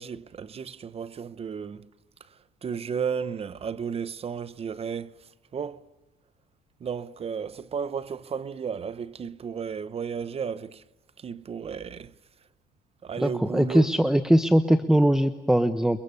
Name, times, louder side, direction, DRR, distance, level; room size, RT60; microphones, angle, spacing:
voice 1, 0.0-1.9 2.6-5.2 5.5-5.8 6.8-10.8 11.2-12.1 13.0-13.9, right 6 dB, 35° right, 0.8 m, -33 dB
voice 2, 13.2-16.0, right 1 dB, 5° right, 0.9 m, -21 dB
29.0 x 23.5 x 6.9 m
cardioid pair, 110°, 17 cm